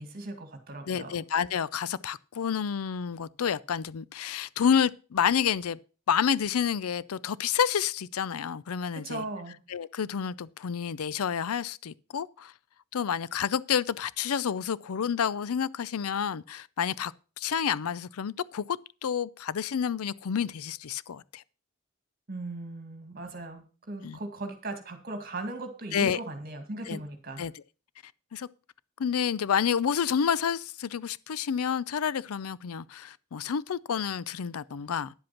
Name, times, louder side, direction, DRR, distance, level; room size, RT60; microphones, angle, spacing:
voice 1, 0.0-1.2 8.9-9.6 22.3-27.5, right 2 dB, 45° right, 2.0 m, -38 dB
voice 2, 0.9-5.8 6.1-9.2 9.7-12.5 12.9-21.4 24.0-24.2 25.9-26.2 26.9-27.0 27.4-27.5 28.3-28.5 29.0-35.1, left 7 dB, 85° left, 0.5 m, -29 dB
10.5 x 7.7 x 5.8 m
head